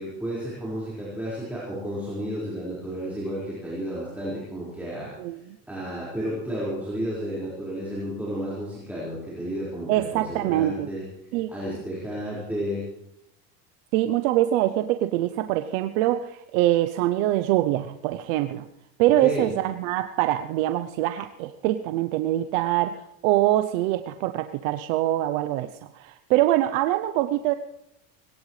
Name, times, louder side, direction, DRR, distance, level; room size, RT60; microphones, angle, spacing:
voice 1, 0.0-5.1 5.7-11.0 11.5-12.8 19.2-19.5, equal, 5° right, -7 dB, 5.0 m, -32 dB
voice 2, 9.9-10.9 11.3-11.5 13.9-18.6 19.0-27.5, right 14 dB, 80° right, 10 dB, 0.8 m, -24 dB
21.0 x 18.0 x 3.3 m, 0.85 s
cardioid pair, 135°, 40 cm